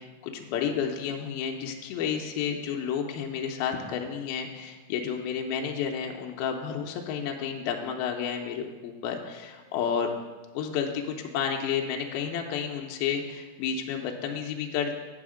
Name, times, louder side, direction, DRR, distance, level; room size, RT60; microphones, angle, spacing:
voice 1, 0.0-10.1 10.5-14.9, left 7 dB, 80° left, 2 dB, 2.4 m, -31 dB
8.4 x 6.3 x 4.9 m, 1.3 s
omnidirectional pair, 4.7 m